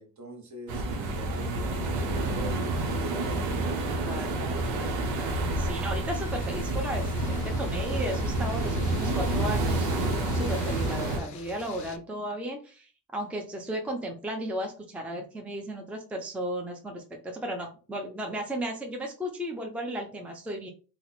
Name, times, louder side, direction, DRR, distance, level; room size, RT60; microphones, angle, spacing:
voice 1, 0.0-3.6 4.0-5.3, right 2 dB, 40° right, 1.0 m, -43 dB
sound 1, 0.7-11.2, right 2 dB, 85° right, 0.8 m, -29 dB
voice 2, 5.6-9.9 10.3-20.7, equal, 5° right, 0.5 m, -35 dB
sound 2, 6.1-12.0, left 6 dB, 45° left, 0.5 m, -44 dB
2.8 x 2.1 x 4.0 m
supercardioid pair, 75°, 43 cm